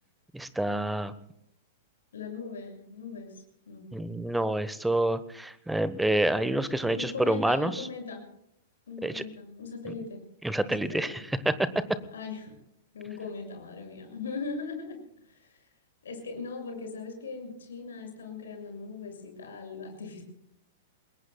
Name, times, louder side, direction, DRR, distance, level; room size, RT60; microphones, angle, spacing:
voice 1, 0.3-1.1 3.9-7.9 9.0-9.2 10.4-11.5, right 1 dB, 5° right, 14 dB, 1.2 m, -28 dB
voice 2, 2.1-3.9 6.3-8.2 8.9-10.2 10.6-11.3 12.1-12.6 12.9-15.0 15.3-15.6 16.0-20.2, left 4 dB, 65° left, 3 dB, 6.5 m, -40 dB
28.0 x 21.0 x 2.3 m, 0.76 s
figure-of-eight pair, 100°, 0 cm